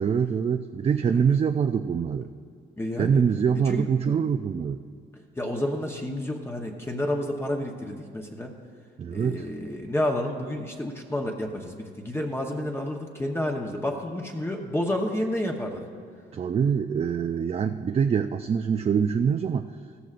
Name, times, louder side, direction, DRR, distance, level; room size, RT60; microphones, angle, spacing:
voice 1, 0.0-2.3 3.0-4.8 9.0-9.5 16.3-19.7, right 7 dB, 30° right, 8 dB, 0.3 m, -24 dB
voice 2, 1.1-1.4 2.8-3.2 3.6-4.1 5.4-8.5 9.1-15.8, left 1 dB, 10° left, 1 dB, 0.9 m, -30 dB
15.0 x 14.0 x 2.5 m, 2.1 s
cardioid pair, 90°, 20 cm